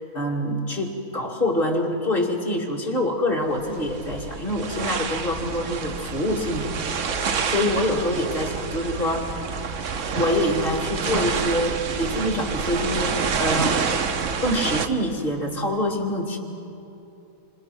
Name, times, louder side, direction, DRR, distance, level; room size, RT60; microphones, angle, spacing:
voice 1, 0.1-7.0 7.5-9.3 10.2-13.8 14.4-16.4, left 1 dB, 35° left, -1 dB, 2.8 m, -25 dB
sound 1, 3.5-14.9, right 6 dB, 60° right, 1.2 m, -28 dB
27.0 x 26.5 x 6.0 m, 2.9 s
omnidirectional pair, 1.6 m